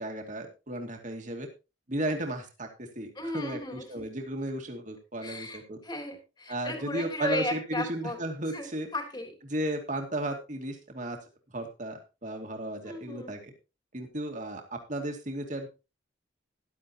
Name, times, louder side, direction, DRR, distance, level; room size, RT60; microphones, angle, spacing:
voice 1, 0.0-1.5 1.9-5.8 6.5-8.9 9.5-11.2 11.5-13.5 13.9-15.7, right 1 dB, 40° right, 3 dB, 2.3 m, -34 dB
voice 2, 3.1-4.1 5.2-8.2 8.5-9.3 12.8-13.3, left 1 dB, 25° left, 3 dB, 3.3 m, -35 dB
13.5 x 11.5 x 3.0 m, 0.29 s
head